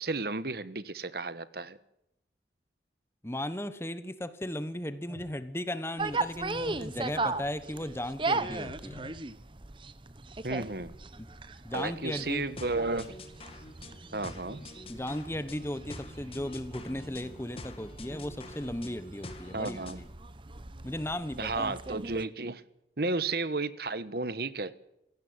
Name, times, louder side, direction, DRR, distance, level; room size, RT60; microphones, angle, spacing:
voice 1, 0.0-1.8 10.4-10.9 11.7-13.1 14.1-14.6 19.5-20.0 21.4-22.6 23.0-24.7, right 3 dB, 55° right, 15 dB, 1.3 m, -33 dB
voice 2, 3.2-9.0 11.2-11.3 11.6-12.4 14.9-20.1 20.8-21.8, left 1 dB, 15° left, 12 dB, 1.0 m, -36 dB
Telephone, 5.1-5.3 6.5-7.3 8.4-9.2, left 1 dB, 5° right, 5.2 m, -46 dB
sound 1, 6.0-22.2, right 3 dB, 25° right, 0.9 m, -38 dB
sound 2, 11.7-20.1, left 2 dB, 30° left, 2.3 m, -47 dB
27.0 x 16.5 x 7.9 m, 0.84 s
head